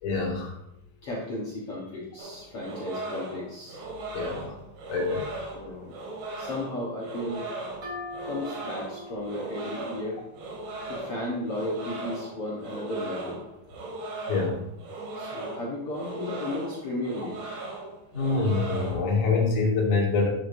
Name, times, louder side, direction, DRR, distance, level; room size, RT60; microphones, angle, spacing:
voice 1, 0.0-0.6 4.1-4.6 4.9-5.3 14.3-14.6 18.1-20.3, left 3 dB, 40° left, -3 dB, 2.4 m, -25 dB
voice 2, 1.0-3.8 5.5-5.9 6.4-7.5 8.2-10.2 10.8-13.4 15.1-17.6, left 1 dB, 60° left, -5 dB, 1.5 m, -34 dB
sound 1, 2.2-19.2, right 2 dB, 80° right, 3.8 m, -38 dB
sound 2, 7.8-11.4, left 2 dB, 35° right, 2.9 m, -43 dB
11.5 x 6.7 x 2.7 m, 0.80 s
omnidirectional pair, 4.4 m